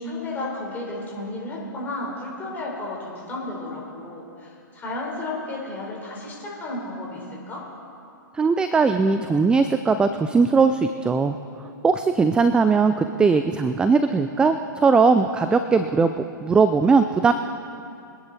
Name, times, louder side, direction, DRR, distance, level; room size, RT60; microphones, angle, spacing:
voice 1, 0.0-7.6, left 2 dB, 15° left, -4 dB, 4.1 m, -33 dB
voice 2, 8.3-11.4 11.8-16.1 16.4-17.3, right 4 dB, 10° right, 9 dB, 0.4 m, -19 dB
24.5 x 10.0 x 4.2 m, 2.7 s
hypercardioid pair, 130°, 11 cm